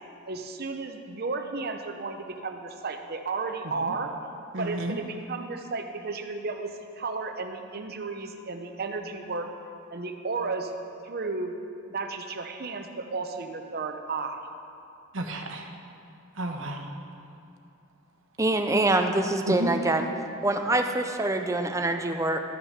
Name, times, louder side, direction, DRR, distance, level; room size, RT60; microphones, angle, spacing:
voice 1, 0.3-4.1 4.6-9.5 9.9-10.7 11.0-11.6 11.9-14.4, right 4 dB, 50° right, 6 dB, 0.8 m, -33 dB
voice 2, 4.5-5.0 15.1-15.7 16.4-16.9 19.5-19.7, right 1 dB, 70° right, 3 dB, 1.1 m, -32 dB
voice 3, 18.4-20.1 20.4-22.4, right 2 dB, 15° right, 6 dB, 0.6 m, -25 dB
13.0 x 6.3 x 6.5 m, 2.6 s
head